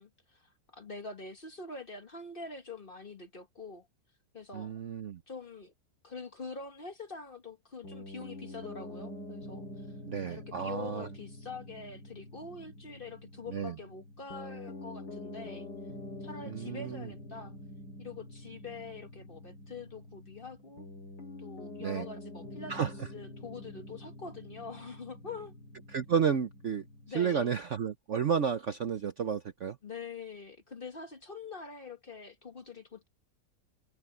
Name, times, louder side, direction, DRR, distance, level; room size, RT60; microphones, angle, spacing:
voice 1, 0.0-3.9 4.3-4.7 5.3-5.7 6.0-9.9 10.2-15.7 16.2-17.6 18.0-20.9 21.4-25.6 27.1-27.5 29.8-33.1, left 4 dB, 30° left, 1.5 m, -45 dB
voice 2, 4.5-5.2 10.1-11.1 13.5-13.7 16.4-17.1 21.8-22.1 22.7-22.9 25.9-26.8 27.1-29.8, right 7 dB, 55° right, 0.9 m, -31 dB
Piano, 7.8-27.2, left 1 dB, 75° left, 4.0 m, -46 dB
omnidirectional pair, 1.9 m